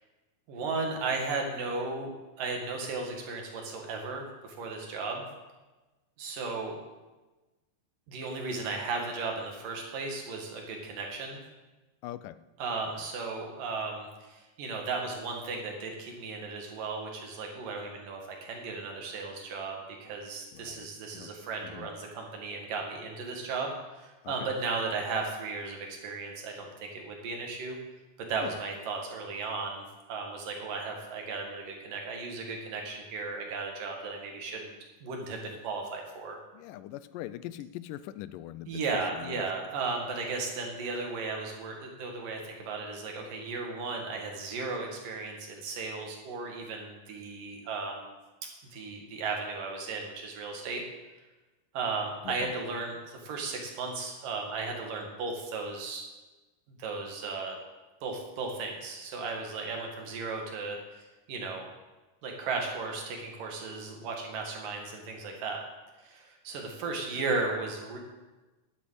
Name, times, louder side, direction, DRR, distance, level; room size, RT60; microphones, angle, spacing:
voice 1, 0.5-2.1 2.4-5.2 6.2-6.8 8.1-11.4 12.6-27.8 28.3-34.7 35.0-36.4 38.7-48.2 48.7-50.8 51.7-56.0 56.8-57.6 58.0-61.7 62.2-65.6 66.0-68.0, right 4 dB, 85° right, 1 dB, 3.6 m, -35 dB
voice 2, 12.0-12.4 20.5-21.3 21.6-21.9 24.2-24.6 28.4-28.6 36.5-39.5 52.2-52.5, left 13 dB, 85° left, 15 dB, 2.2 m, -42 dB
11.0 x 8.6 x 8.2 m, 1.2 s
omnidirectional pair, 3.8 m